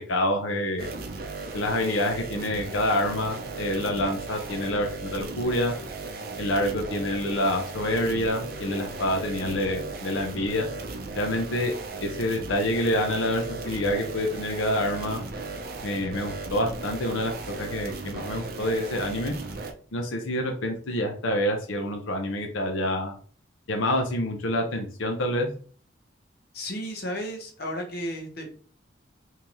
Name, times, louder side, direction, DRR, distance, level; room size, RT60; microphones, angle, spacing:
voice 1, 0.1-0.9 1.5-5.7 6.4-10.7 11.2-11.7 12.0-15.2 15.8-19.3 19.9-23.1 23.7-25.5, left 1 dB, 85° left, 2 dB, 0.7 m, -27 dB
sound 1, 0.8-19.7, right 3 dB, 50° right, 0.5 m, -37 dB
voice 2, 26.5-28.5, equal, 50° left, 2 dB, 0.8 m, -33 dB
3.7 x 2.8 x 3.0 m, 0.44 s
head